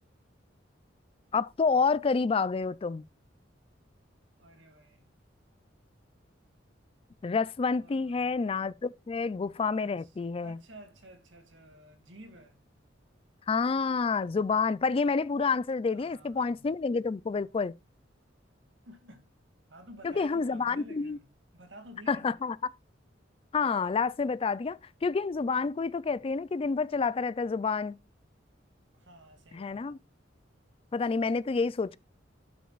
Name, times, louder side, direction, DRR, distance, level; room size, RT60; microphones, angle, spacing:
voice 1, 1.3-3.0 7.2-10.6 13.5-17.7 20.0-21.2 22.1-22.6 23.5-28.0 29.5-30.0 30.9-32.0, left 4 dB, 30° left, 0.3 m, -28 dB
voice 2, 4.4-5.1 7.8-8.5 9.8-10.1 10.4-12.6 15.9-16.7 18.8-19.3 19.7-22.3 28.9-30.1, right 1 dB, 85° right, 2.3 m, -52 dB
12.0 x 6.2 x 2.4 m
head